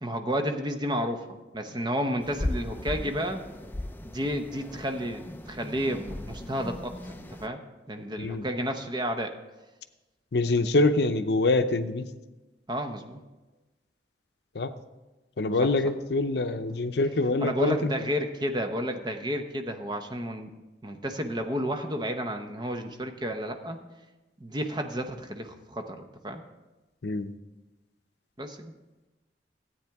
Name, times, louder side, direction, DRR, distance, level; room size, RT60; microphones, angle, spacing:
voice 1, 0.0-1.2 1.5-3.4 4.0-7.6 7.9-9.3 12.7-13.2 15.6-15.7 17.4-20.5 20.8-23.8 24.4-26.4 28.4-28.7, equal, 25° right, 6 dB, 0.7 m, -31 dB
sound 1, 2.2-7.5, left 1 dB, 10° left, 0.4 m, -37 dB
voice 2, 10.3-12.1 14.6-14.7 15.4-17.9 27.0-27.3, left 2 dB, 65° left, 9 dB, 0.6 m, -25 dB
13.5 x 8.7 x 3.5 m, 1.1 s
head